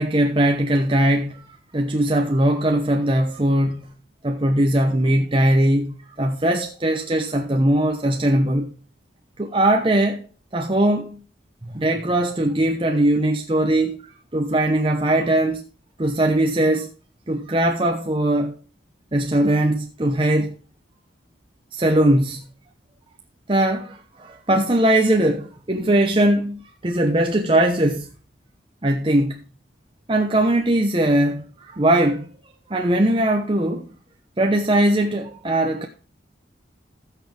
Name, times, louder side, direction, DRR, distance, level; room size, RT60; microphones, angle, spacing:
voice 1, 0.0-3.9 4.2-8.7 9.4-10.3 10.5-11.2 11.6-14.1 14.3-15.6 16.0-16.9 17.3-18.5 19.1-20.6 21.7-22.5 23.5-28.1 28.8-29.4 30.1-32.3 32.7-33.8 34.4-35.9, right 1 dB, 25° right, 0.8 m, -20 dB
15.5 x 6.4 x 3.3 m
head